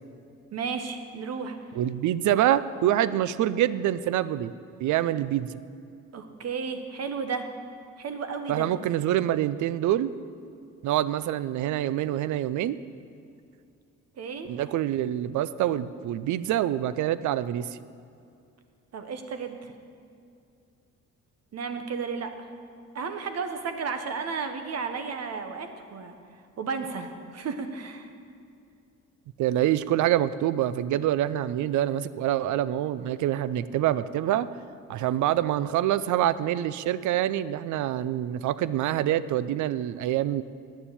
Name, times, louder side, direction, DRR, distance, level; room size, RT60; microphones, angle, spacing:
voice 1, 0.5-1.5 6.1-7.5 8.0-8.7 14.2-14.5 18.9-19.7 21.5-22.5 22.9-26.1 26.6-28.1, right 5 dB, 55° right, 7 dB, 1.1 m, -33 dB
voice 2, 1.8-4.5 4.8-5.6 8.5-10.1 10.8-12.8 14.5-17.7 29.4-34.5 34.9-40.4, right 12 dB, 75° right, 16 dB, 0.5 m, -26 dB
9.4 x 7.0 x 8.7 m, 2.4 s
cardioid pair, 90°, 30 cm